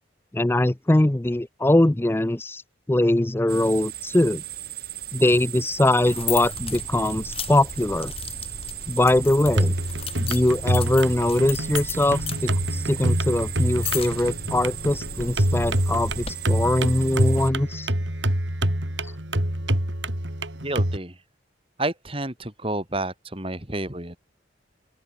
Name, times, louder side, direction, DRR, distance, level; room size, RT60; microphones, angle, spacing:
voice 1, 0.3-2.6 2.9-4.4 5.1-8.1 8.9-9.7 10.2-17.9 19.0-19.1, left 1 dB, 10° left, 0.4 m, -22 dB
sound 1, 3.5-17.5, right 13 dB, 55° right, 4.2 m, -37 dB
sound 2, 6.1-16.3, left 5 dB, 30° left, 3.3 m, -35 dB
sound 3, 9.5-21.0, right 1 dB, 75° right, 5.1 m, -26 dB
voice 2, 20.6-21.2 21.8-24.2, right 2 dB, 30° right, 3.2 m, -30 dB
open air
head